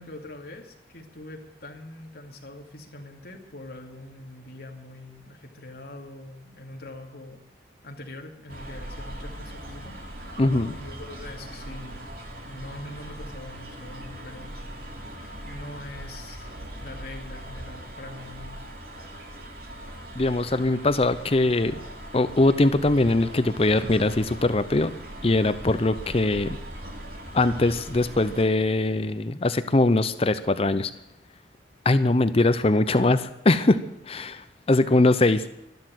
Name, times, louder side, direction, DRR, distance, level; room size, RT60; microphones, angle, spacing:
voice 1, 0.0-7.4 7.8-12.0 12.5-14.5 15.5-16.5 16.8-18.6, left 1 dB, 60° left, 2 dB, 2.5 m, -43 dB
sound 1, 8.5-28.4, right 1 dB, 55° right, 2.8 m, -40 dB
voice 2, 10.4-10.7 20.2-21.7 22.1-24.9 25.2-26.6 27.3-30.9 31.8-33.8 34.1-35.4, left 2 dB, 35° left, 12 dB, 0.6 m, -21 dB
13.0 x 12.0 x 7.7 m, 0.84 s
head